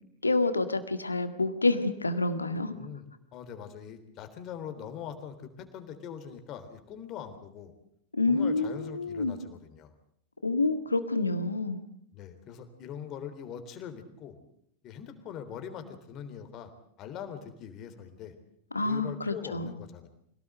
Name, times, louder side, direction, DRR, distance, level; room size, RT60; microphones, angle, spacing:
voice 1, 0.2-2.7 8.1-9.4 10.4-11.8 18.7-19.7, left 3 dB, 80° left, 10 dB, 1.9 m, -28 dB
voice 2, 2.7-7.7 8.3-9.9 12.1-14.4 14.8-16.7 17.0-18.4 18.8-20.1, left 8 dB, 35° left, 8 dB, 3.5 m, -42 dB
25.5 x 18.0 x 7.9 m, 0.69 s
figure-of-eight pair, 90°, 0 cm